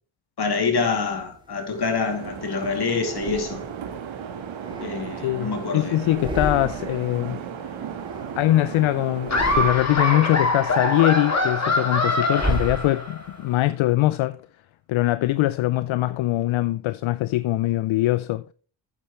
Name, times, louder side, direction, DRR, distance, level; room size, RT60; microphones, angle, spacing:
voice 1, 0.4-3.6 4.8-6.0 7.2-7.4, left 4 dB, 55° left, 2.9 m, -26 dB
sound 1, 1.1-2.3 3.0-4.0 4.4-5.7 6.0-7.1 7.4-8.7 9.1-10.2 10.6-13.4, right 1 dB, 10° right, 2.6 m, -34 dB
sound 2, 2.1-9.7, right 7 dB, 75° right, 1.6 m, -35 dB
voice 2, 5.2-7.4 8.4-14.4 14.9-18.5, left 16 dB, 80° left, 0.6 m, -22 dB
Laughter, 9.3-13.3, left 2 dB, 35° left, 2.7 m, -23 dB
12.0 x 9.0 x 3.2 m
cardioid pair, 70°, 47 cm